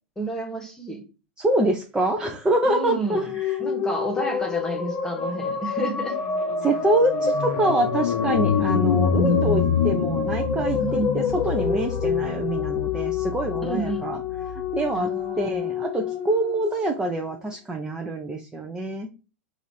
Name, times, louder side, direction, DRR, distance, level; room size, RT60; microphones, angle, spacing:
voice 1, 0.2-1.0 2.6-3.3 3.6-6.2 10.8-11.2 13.6-14.1 14.9-15.6, right 1 dB, 10° left, 3 dB, 1.3 m, -30 dB
voice 2, 1.4-3.6 6.6-14.2 14.5-15.1 15.4-19.1, right 1 dB, 10° right, 1 dB, 0.7 m, -25 dB
sound 1, 3.0-17.4, left 5 dB, 30° left, 0.7 m, -29 dB
sound 2, 5.3-14.9, left 6 dB, 75° left, 0.9 m, -27 dB
4.0 x 2.6 x 4.8 m, 0.33 s
hypercardioid pair, 110°, 6 cm